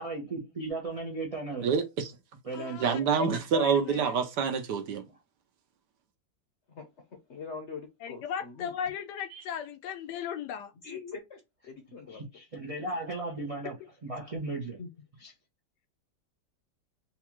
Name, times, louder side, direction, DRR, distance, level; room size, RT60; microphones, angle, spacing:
voice 1, 0.0-1.7 2.4-3.0 12.1-13.8 14.0-14.8 15.2-15.3, right 2 dB, 55° right, 0.4 m, -36 dB
voice 2, 1.6-2.1 2.8-5.0, right 6 dB, 70° right, 1.3 m, -27 dB
voice 3, 2.5-4.2 8.0-10.7, left 8 dB, 75° left, 1.1 m, -37 dB
voice 4, 7.3-8.7 10.8-12.2 12.9-13.0 14.8-14.9, left 5 dB, 50° left, 0.9 m, -43 dB
4.1 x 2.3 x 3.0 m
omnidirectional pair, 2.0 m